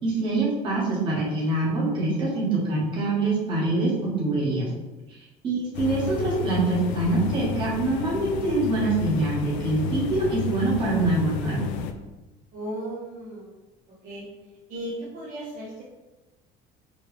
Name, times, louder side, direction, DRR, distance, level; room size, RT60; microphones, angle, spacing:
voice 1, 0.0-4.7 5.4-11.7, right 2 dB, 25° right, -6 dB, 1.4 m, -25 dB
sound 1, 5.7-11.9, left 8 dB, 85° left, 0.4 m, -31 dB
voice 2, 12.5-13.5 14.0-14.3 14.7-15.8, right 1 dB, 50° right, -6 dB, 1.0 m, -35 dB
4.5 x 3.0 x 3.3 m, 1.1 s
cardioid pair, 180°, 18 cm